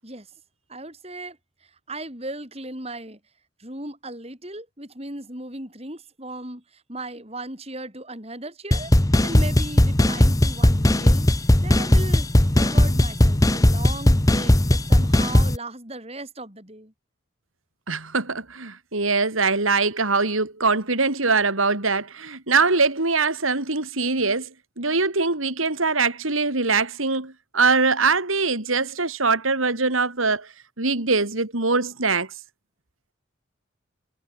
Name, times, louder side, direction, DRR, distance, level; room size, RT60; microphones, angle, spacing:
voice 1, 0.7-1.4 1.6-3.2 3.6-8.9 9.2-16.9, right 2 dB, 30° right, 6.5 m, -37 dB
sound 1, 8.7-15.6, left 1 dB, 15° left, 0.9 m, -18 dB
voice 2, 17.9-24.5 24.8-32.3, right 4 dB, 90° right, 3.8 m, -22 dB
head